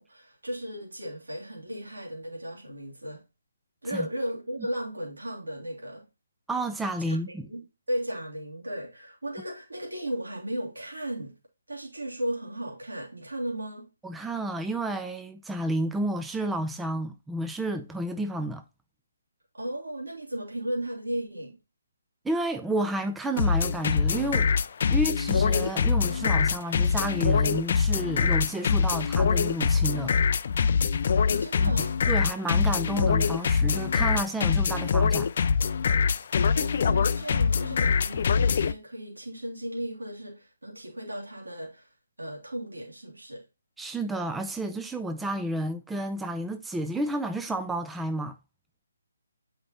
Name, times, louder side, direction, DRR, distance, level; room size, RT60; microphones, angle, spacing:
voice 1, 0.0-3.2 3.8-6.1 7.1-11.4 11.7-13.9 19.5-21.6 31.3-32.0 36.5-43.4, right 1 dB, 85° right, 2.3 m, -35 dB
voice 2, 6.5-7.5 14.0-18.6 22.2-24.5 24.9-30.2 31.6-35.3 43.8-48.4, right 1 dB, 5° right, 0.5 m, -31 dB
sound 1, 23.4-38.7, left 6 dB, 50° left, 0.4 m, -24 dB
8.0 x 4.9 x 2.9 m
figure-of-eight pair, 145°, 0 cm